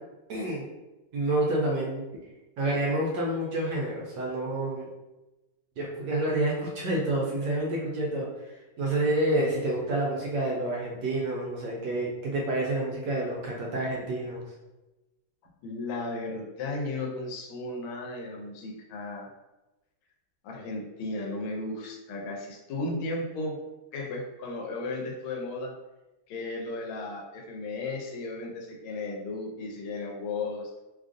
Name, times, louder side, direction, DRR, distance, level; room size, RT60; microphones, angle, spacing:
voice 1, 0.3-0.6 1.1-2.0 2.6-4.9 5.8-14.4, right 1 dB, 70° right, -3 dB, 1.1 m, -28 dB
voice 2, 15.6-19.3 20.4-23.6 23.9-25.7 26.3-30.8, left 2 dB, 85° left, 0 dB, 1.4 m, -35 dB
3.3 x 2.4 x 2.5 m, 1.0 s
omnidirectional pair, 2.2 m